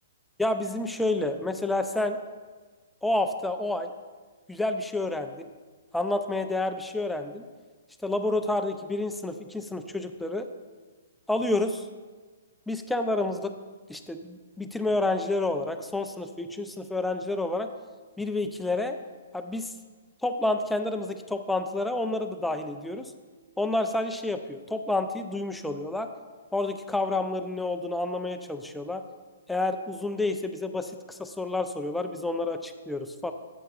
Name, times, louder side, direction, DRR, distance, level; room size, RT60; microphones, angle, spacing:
voice 1, 0.4-2.2 3.0-3.9 4.5-5.5 5.9-7.4 8.0-10.5 11.3-11.9 12.7-13.5 13.9-17.7 18.2-19.0 19.3-19.8 20.2-23.1 23.6-26.1 26.5-29.0 29.5-33.3, left 2 dB, 5° left, 6 dB, 0.5 m, -29 dB
12.0 x 8.0 x 2.4 m, 1.4 s
hypercardioid pair, 135°, 0 cm